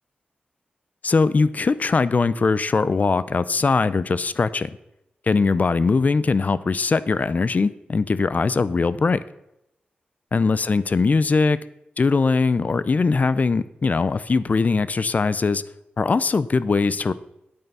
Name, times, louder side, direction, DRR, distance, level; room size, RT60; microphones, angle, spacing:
voice 1, 1.0-4.7 5.3-9.2 10.3-11.6 12.0-15.6 16.0-17.1, left 4 dB, 45° left, 16 dB, 0.5 m, -21 dB
9.1 x 8.4 x 5.5 m, 0.85 s
wide cardioid pair, 85°, 4 cm